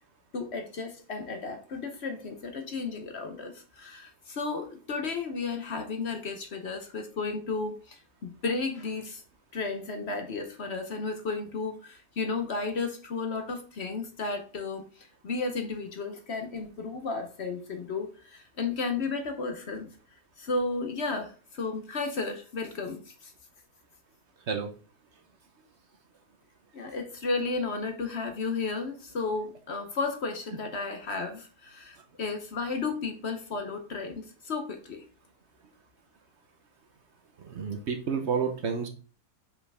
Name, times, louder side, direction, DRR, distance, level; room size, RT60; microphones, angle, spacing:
voice 1, 0.3-9.2 9.5-19.9 20.4-23.3 26.7-35.0, left 4 dB, 50° left, 6 dB, 1.0 m, -33 dB
voice 2, 37.4-38.9, right 6 dB, 55° right, 5 dB, 1.0 m, -30 dB
5.5 x 5.0 x 3.4 m, 0.36 s
omnidirectional pair, 1.5 m